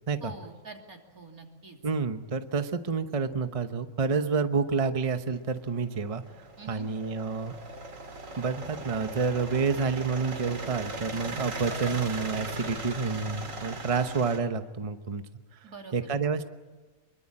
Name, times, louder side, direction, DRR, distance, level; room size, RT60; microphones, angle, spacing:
voice 1, 0.2-1.8 6.6-6.9 15.6-16.0, right 4 dB, 85° right, 2 dB, 3.6 m, -45 dB
voice 2, 1.8-7.5 8.4-15.2 15.5-16.4, right 5 dB, 25° right, 9 dB, 1.0 m, -29 dB
sound 1, 5.3-14.4, right 2 dB, 65° right, 2.5 m, -38 dB
26.0 x 22.5 x 8.7 m, 1.3 s
omnidirectional pair, 1.5 m